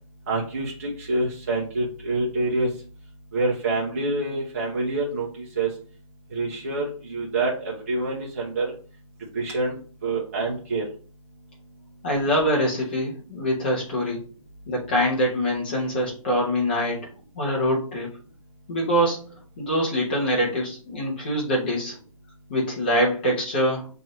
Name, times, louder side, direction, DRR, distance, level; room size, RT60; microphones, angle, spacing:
voice 1, 0.3-2.7 3.3-5.7 6.3-8.7 9.3-10.8, right 2 dB, 25° right, -4 dB, 0.7 m, -26 dB
voice 2, 12.0-14.2 14.7-17.1 17.3-18.1 18.7-22.0 22.5-23.9, equal, 15° left, -3 dB, 0.9 m, -24 dB
5.9 x 2.7 x 3.0 m, 0.39 s
hypercardioid pair, 180°, 18 cm